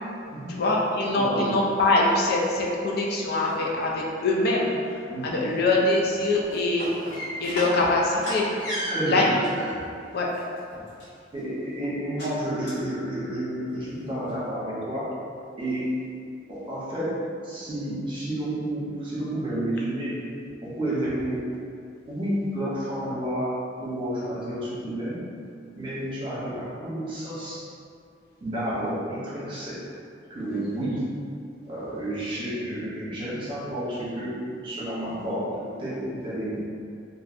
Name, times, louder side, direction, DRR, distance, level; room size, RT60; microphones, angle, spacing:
voice 1, 0.5-6.9 7.4-8.5 9.1-9.7 10.1-10.3 30.5-30.8 35.0-35.3, left 2 dB, 55° left, -2 dB, 0.4 m, -24 dB
voice 2, 1.2-1.6 5.1-5.4 8.9-9.2 11.3-15.1 15.6-16.0 16.5-17.2 17.4-20.1 20.6-21.4 22.1-23.5 23.8-25.2 25.7-27.6 28.4-29.8 30.3-31.0 31.6-36.6, right 1 dB, 30° right, -9 dB, 0.8 m, -30 dB
sound 1, 2.0-2.1 2.4-2.5 2.9-3.5 6.2-9.8 10.3-11.4 12.2-12.3 12.7-12.9 13.2-13.3 13.7-13.8 14.2-14.3, equal, 80° left, 1.2 m, -34 dB
3.1 x 2.6 x 2.5 m, 2.3 s
head